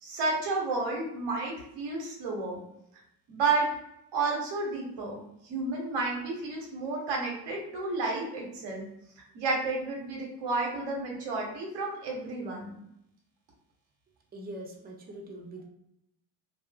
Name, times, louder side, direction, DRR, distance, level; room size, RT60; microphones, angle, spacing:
voice 1, 0.0-2.6 3.3-3.7 4.1-8.9 9.2-12.8, right 3 dB, 90° right, 0 dB, 0.9 m, -31 dB
voice 2, 14.3-15.6, right 1 dB, 20° right, 1 dB, 0.6 m, -42 dB
2.3 x 2.0 x 3.3 m, 0.80 s
supercardioid pair, 65°, 44 cm